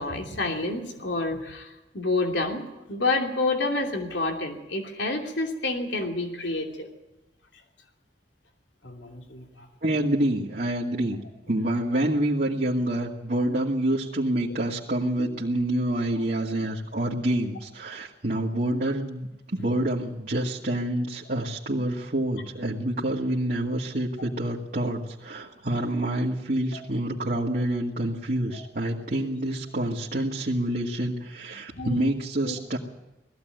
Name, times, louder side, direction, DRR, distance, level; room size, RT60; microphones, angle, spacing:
voice 1, 0.0-6.9 8.8-9.7 15.2-15.3 26.7-26.8 29.2-29.3 31.7-32.0 32.4-32.6, left 2 dB, 90° left, 3 dB, 2.9 m, -29 dB
voice 2, 9.8-11.2 11.5-32.8, right 1 dB, 55° right, -4 dB, 2.0 m, -27 dB
19.5 x 15.0 x 9.3 m, 0.97 s
head